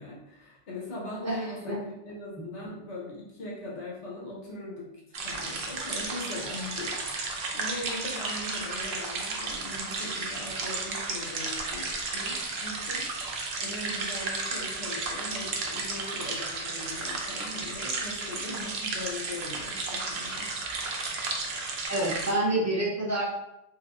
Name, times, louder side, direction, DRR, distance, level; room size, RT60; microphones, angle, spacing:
voice 1, 0.0-4.9 5.2-13.1 13.6-20.9, left 2 dB, 90° left, -3 dB, 1.2 m, -40 dB
voice 2, 1.2-1.8 21.9-23.2, right 1 dB, 15° right, -6 dB, 0.7 m, -28 dB
sound 1, 5.1-22.3, right 3 dB, 70° right, 0.8 m, -33 dB
3.2 x 2.9 x 2.5 m, 0.87 s
omnidirectional pair, 1.1 m